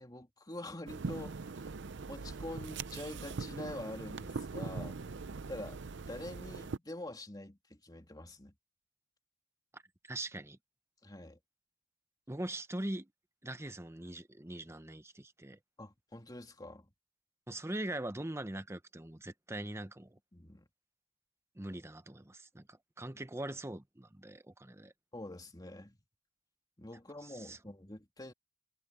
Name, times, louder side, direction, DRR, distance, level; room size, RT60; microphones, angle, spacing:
voice 1, 0.0-1.7 2.1-5.0 5.5-5.8 6.1-8.5 11.0-11.4 15.8-16.9 20.3-20.7 25.1-26.0 26.8-28.3, left 1 dB, 20° left, 2.8 m, -46 dB
sound 1, 0.9-6.8, right 4 dB, 60° right, 0.6 m, -41 dB
voice 2, 10.1-10.6 12.3-13.1 13.4-15.6 17.5-20.2 21.6-24.9 27.5-27.6, right 1 dB, 15° right, 0.9 m, -42 dB
head